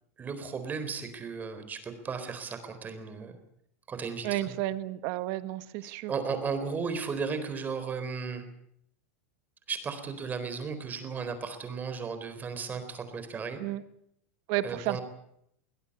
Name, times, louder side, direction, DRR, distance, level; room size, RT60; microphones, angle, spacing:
voice 1, 0.2-3.4 3.9-4.6 5.8-8.4 9.7-13.6 14.6-15.0, right 5 dB, 20° right, 9 dB, 4.0 m, -35 dB
voice 2, 4.2-6.1 13.6-13.8 14.5-15.0, right 15 dB, 55° right, 12 dB, 1.6 m, -32 dB
23.0 x 17.5 x 8.5 m, 0.73 s
supercardioid pair, 130°, 8 cm